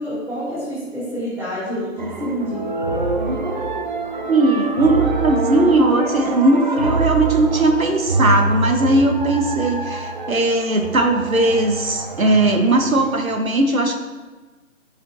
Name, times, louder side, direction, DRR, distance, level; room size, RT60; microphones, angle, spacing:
voice 1, 0.0-2.8, equal, 5° right, -11 dB, 2.5 m, -28 dB
sound 1, 2.0-13.3, right 3 dB, 35° right, 0.6 m, -25 dB
voice 2, 4.3-13.9, right 2 dB, 75° right, 5 dB, 1.3 m, -18 dB
13.5 x 5.5 x 2.7 m, 1.3 s
figure-of-eight pair, 140°, 42 cm